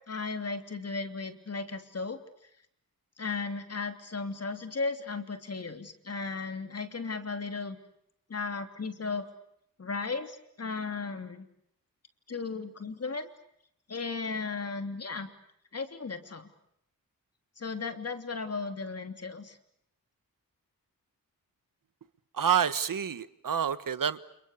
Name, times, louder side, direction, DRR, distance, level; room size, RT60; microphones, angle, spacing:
voice 1, 0.1-2.2 3.2-7.8 8.3-9.3 9.8-11.4 12.3-13.3 13.9-15.3 15.7-16.5 17.6-19.6, left 4 dB, 45° left, 3.2 m, -35 dB
voice 2, 22.3-24.2, right 8 dB, 65° right, 1.5 m, -28 dB
30.0 x 29.0 x 6.6 m
wide cardioid pair, 120°, 35 cm